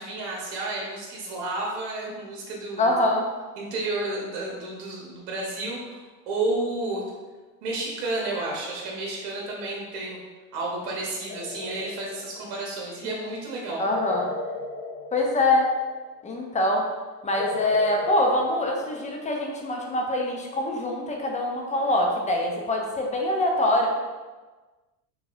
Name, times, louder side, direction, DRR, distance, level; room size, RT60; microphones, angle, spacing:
voice 1, 0.0-2.9 3.6-7.0 7.6-10.2 10.5-13.9, right 2 dB, 60° right, -3 dB, 1.2 m, -31 dB
voice 2, 2.8-3.3 13.8-14.3 15.1-15.7 16.2-16.9 17.2-23.9, left 1 dB, 15° left, 1 dB, 0.6 m, -24 dB
sound 1, 11.3-12.7 13.9-16.1 17.4-19.5, left 3 dB, 70° left, 0.9 m, -36 dB
4.6 x 3.3 x 2.6 m, 1.3 s
hypercardioid pair, 95°, 46 cm